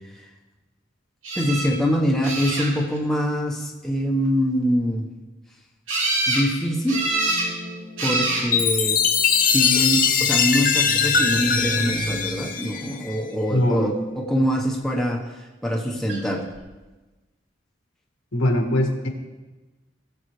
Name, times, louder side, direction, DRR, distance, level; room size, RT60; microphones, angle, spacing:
sound 1, 1.2-1.7 2.2-3.0 5.9-6.5 6.9-7.5 8.0-8.5 9.4-9.9 16.1-16.2 16.5-16.6, right 2 dB, 85° right, 2.8 m, -25 dB
voice 1, 1.3-5.1 6.3-7.1 8.0-9.0 9.4-16.5, equal, ahead, -2 dB, 1.2 m, -24 dB
sound 2, 6.9-10.2 10.5-12.2, right 2 dB, 25° right, 1.0 m, -35 dB
Chime, 8.5-13.2, left 6 dB, 45° left, 0.9 m, -21 dB
voice 2, 13.5-13.9 18.3-19.1, left 1 dB, 90° left, 2 dB, 1.8 m, -21 dB
19.0 x 7.4 x 3.3 m, 1.2 s
head